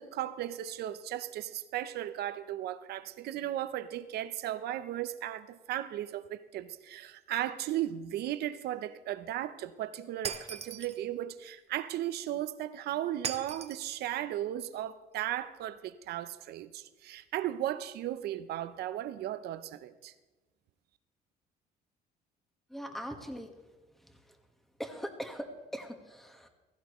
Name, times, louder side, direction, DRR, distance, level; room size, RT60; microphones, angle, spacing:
voice 1, 0.0-20.1, right 12 dB, 70° right, 0.8 m, -36 dB
Shatter, 10.2-11.0 13.2-14.0, right 7 dB, 40° right, 1.1 m, -38 dB
voice 2, 22.7-23.5 24.0-24.4 24.8-26.5, equal, ahead, 1.5 m, -41 dB
16.0 x 15.5 x 3.1 m
cardioid pair, 110°, 17 cm